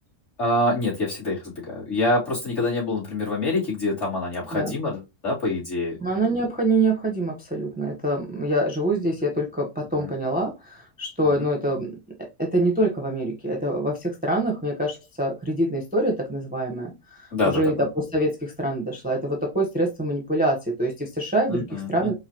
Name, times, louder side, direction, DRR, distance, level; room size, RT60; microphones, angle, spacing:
voice 1, 0.4-6.0 10.0-10.1 11.2-11.5 17.3-17.7 21.5-22.1, left 2 dB, 55° left, 2.6 m, -26 dB
voice 2, 6.0-17.3 17.5-22.1, right 1 dB, 10° right, 0.7 m, -25 dB
4.8 x 2.5 x 2.8 m
omnidirectional pair, 1.5 m